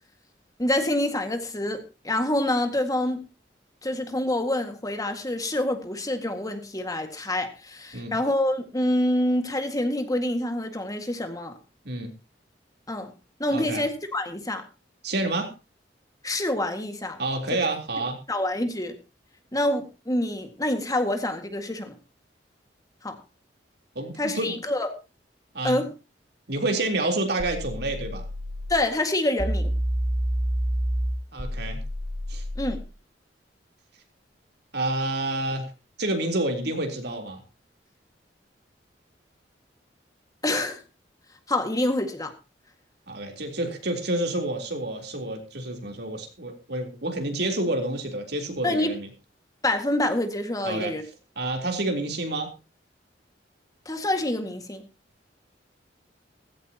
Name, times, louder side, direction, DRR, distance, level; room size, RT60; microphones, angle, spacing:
voice 1, 0.6-3.2 3.8-11.5 12.9-13.1 13.4-14.6 16.2-17.2 17.5-17.6 18.3-19.0 19.5-21.9 23.0-23.2 24.2-24.9 25.6-25.9 28.7-29.7 32.6-32.8 40.4-40.8 41.5-42.3 48.6-48.9 49.6-51.0 53.9-54.8, left 1 dB, 20° left, 6 dB, 1.9 m, -26 dB
voice 2, 13.5-13.8 15.0-15.5 17.2-18.2 24.0-24.5 25.5-25.8 26.5-28.2 31.3-31.8 32.3-32.4 34.7-35.7 36.0-37.4 43.1-49.1 50.6-50.9 51.4-52.5, right 2 dB, 65° right, 3 dB, 3.6 m, -28 dB
sound 1, 27.4-28.9 29.4-32.9, equal, 45° right, 2.7 m, -28 dB
16.5 x 16.0 x 2.9 m, 0.30 s
head